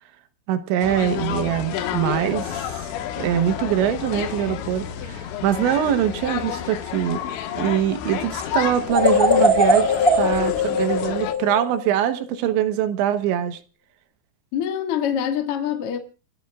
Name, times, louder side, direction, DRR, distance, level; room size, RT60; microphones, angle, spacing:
voice 1, 0.5-2.7 3.2-7.2 7.5-13.6, right 10 dB, 75° right, 3.3 m, -23 dB
sound 1, 0.8-11.3, left 10 dB, 75° left, 3.5 m, -30 dB
sound 2, 8.9-12.1, left 2 dB, 15° left, 4.0 m, -20 dB
voice 2, 14.5-16.0, left 9 dB, 60° left, 1.6 m, -25 dB
28.5 x 13.0 x 2.4 m
omnidirectional pair, 5.6 m